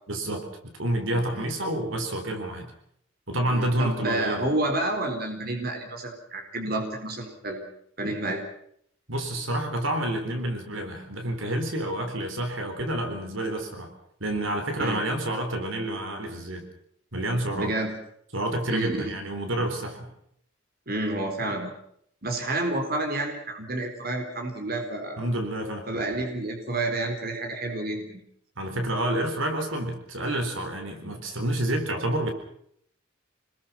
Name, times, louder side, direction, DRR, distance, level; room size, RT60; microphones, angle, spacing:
voice 1, 0.1-2.7 3.3-4.5 9.1-13.9 14.2-16.7 17.1-17.7 18.3-20.1 25.2-25.9 28.6-32.3, right 1 dB, 70° right, 5 dB, 4.1 m, -29 dB
voice 2, 3.5-7.7 8.0-8.4 14.8-15.0 17.5-17.9 18.7-19.1 20.9-21.7 22.2-25.2 25.9-28.2, right 2 dB, 45° right, 3 dB, 4.1 m, -29 dB
27.0 x 21.0 x 5.9 m, 0.68 s
head